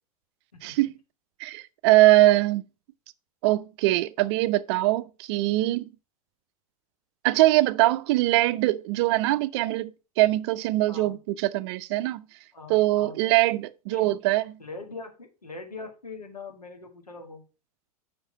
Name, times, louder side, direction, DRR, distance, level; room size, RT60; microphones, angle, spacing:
voice 1, 0.6-0.9 1.4-2.6 3.4-5.9 7.2-9.9 10.2-12.2 12.7-14.4, right 17 dB, 45° right, 0.5 m, -22 dB
voice 2, 10.9-11.2 12.5-13.2 13.9-14.1 14.6-17.4, left 3 dB, 85° left, 1.9 m, -42 dB
5.9 x 4.8 x 5.3 m
figure-of-eight pair, 95°, 19 cm